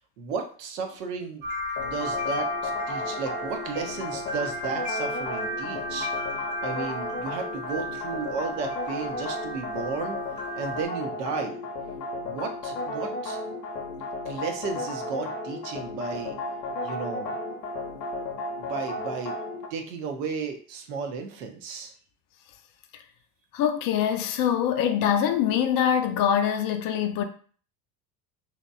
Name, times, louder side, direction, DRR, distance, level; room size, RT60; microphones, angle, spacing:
voice 1, 0.2-1.4 1.8-6.1 6.6-10.2 10.6-11.6 12.2-13.4 14.3-16.4 16.8-17.3 18.6-19.4 19.7-21.9, right 5 dB, 80° right, 0.6 m, -34 dB
sound 1, 1.4-10.9, left 1 dB, 20° right, 0.7 m, -35 dB
sound 2, 1.8-19.7, left 1 dB, 90° left, 0.6 m, -34 dB
voice 2, 23.5-27.2, left 9 dB, 45° left, 0.4 m, -24 dB
2.8 x 2.1 x 2.2 m
hypercardioid pair, 70°, 49 cm